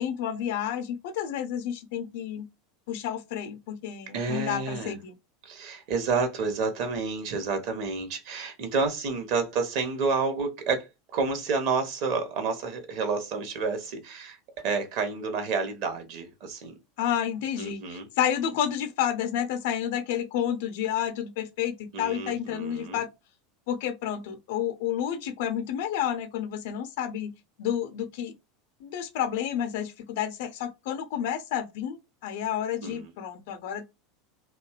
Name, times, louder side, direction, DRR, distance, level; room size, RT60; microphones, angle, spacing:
voice 1, 0.0-2.5 2.9-5.1 17.0-23.1 23.7-27.3 27.6-28.3 28.8-33.9, left 10 dB, 60° left, 0.5 m, -30 dB
voice 2, 4.1-5.0 5.4-16.8 17.6-18.1 21.9-23.0 32.8-33.1, right 4 dB, 50° right, 0.8 m, -30 dB
2.7 x 2.2 x 2.2 m
figure-of-eight pair, 80°, 0 cm